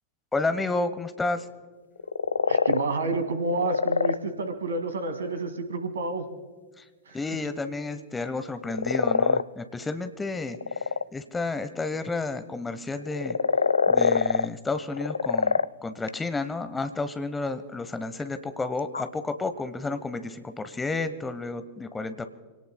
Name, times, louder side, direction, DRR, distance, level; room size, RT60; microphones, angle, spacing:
voice 1, 0.3-1.5 6.8-6.9 7.1-13.4 13.9-22.3, left 3 dB, 10° left, 10 dB, 1.0 m, -31 dB
sound 1, 2.0-2.8 3.4-4.2 8.6-9.4 10.4-11.0 13.0-14.5 14.9-15.7 16.1-16.2 18.2-18.3 18.6-19.0, left 5 dB, 75° left, 0.3 m, -24 dB
voice 2, 2.5-6.3 7.1-7.4, right 3 dB, 70° right, 7 dB, 2.0 m, -29 dB
28.0 x 18.0 x 2.2 m, 1.4 s
figure-of-eight pair, 90°, 0 cm